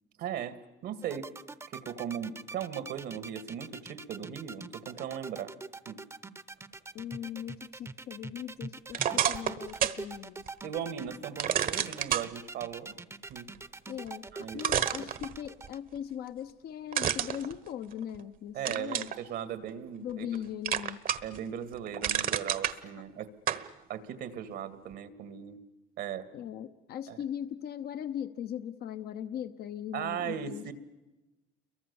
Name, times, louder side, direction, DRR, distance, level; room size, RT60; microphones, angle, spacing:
voice 1, 0.2-0.6 0.8-1.3 1.7-5.5 5.9-6.0 10.6-12.9 13.3-13.5 14.3-14.6 18.5-20.3 21.2-23.3 23.9-25.6 26.0-26.3 27.1-27.2 29.9-30.7, right 9 dB, 80° right, 12 dB, 2.1 m, -38 dB
sound 1, 1.0-15.8, right 3 dB, 15° right, 0.8 m, -44 dB
voice 2, 6.9-10.4 13.9-14.3 14.5-19.1 20.0-21.0 26.3-30.7, left 10 dB, 65° left, 9 dB, 0.9 m, -39 dB
sound 2, 8.9-10.0 10.5-10.6 11.4-12.3 14.1-14.2 14.6-15.7 16.9-18.2 18.7-19.2 19.7-20.4 20.7-21.4 21.7-22.8 23.5-23.7, right 9 dB, 55° right, 1.2 m, -30 dB
29.0 x 23.0 x 7.1 m, 1.0 s
cardioid pair, 110°, 17 cm